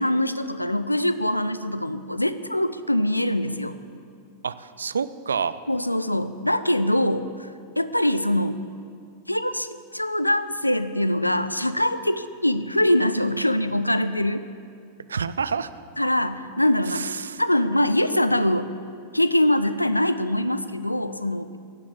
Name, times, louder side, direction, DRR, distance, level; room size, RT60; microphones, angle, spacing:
voice 1, 0.0-3.8 5.7-7.5 7.8-8.6 9.3-14.4 16.0-17.1 17.4-18.7 19.1-21.5, left 1 dB, 85° left, 13 dB, 0.6 m, -23 dB
voice 2, 4.4-5.6 15.1-15.7 16.9-17.4, right 6 dB, 70° right, 15 dB, 0.5 m, -28 dB
16.5 x 11.5 x 7.3 m, 2.3 s
figure-of-eight pair, 90°, 0 cm